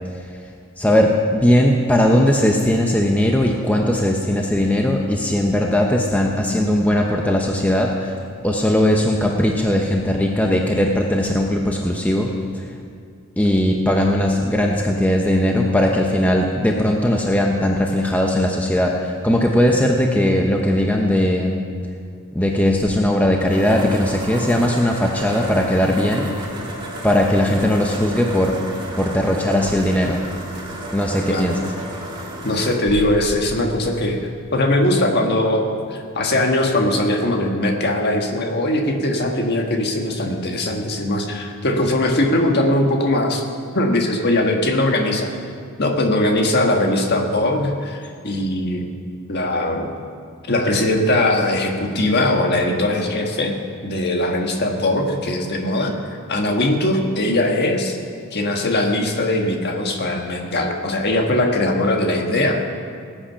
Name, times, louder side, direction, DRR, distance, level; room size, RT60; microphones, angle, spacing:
voice 1, 0.8-12.6 13.4-21.6 22.3-26.5 27.0-28.6 29.0-30.2 30.9-31.6, left 1 dB, 5° left, 1 dB, 0.7 m, -19 dB
sound 1, 23.2-34.5, right 1 dB, 20° right, 1.9 m, -33 dB
voice 2, 32.4-34.2 34.5-43.4 43.7-45.3 45.8-48.8 49.3-49.9 50.5-55.9 56.3-58.0 58.3-62.6, left 1 dB, 50° left, 2 dB, 1.5 m, -20 dB
19.0 x 8.8 x 5.7 m, 2.2 s
head